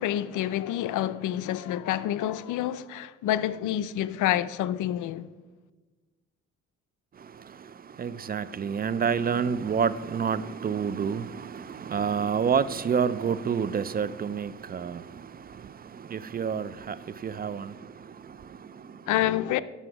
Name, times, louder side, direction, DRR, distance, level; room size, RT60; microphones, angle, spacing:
voice 1, 0.0-5.3 19.1-19.6, left 12 dB, 80° left, 0.5 m, -28 dB
voice 2, 7.1-19.1, right 6 dB, 30° right, 0.4 m, -29 dB
9.7 x 6.9 x 5.9 m
cardioid pair, 90°, 30 cm